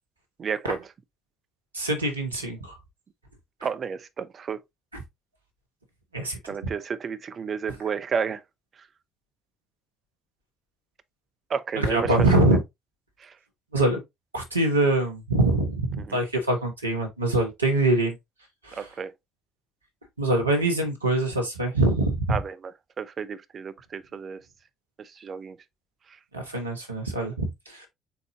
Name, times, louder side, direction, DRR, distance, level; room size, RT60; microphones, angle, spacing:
voice 1, 0.4-0.9 3.6-4.6 6.5-8.4 11.5-12.1 13.2-13.3 16.1-16.2 18.8-19.1 22.3-22.7 23.0-24.4 25.0-25.6, right 6 dB, 40° right, 0.6 m, -31 dB
voice 2, 1.7-2.8 4.9-5.0 6.1-6.4 11.8-12.6 13.7-14.0 14.3-18.2 18.6-18.9 20.2-22.4 26.3-27.9, right 2 dB, 85° right, 1.1 m, -24 dB
4.7 x 4.0 x 2.7 m
figure-of-eight pair, 50°, 0 cm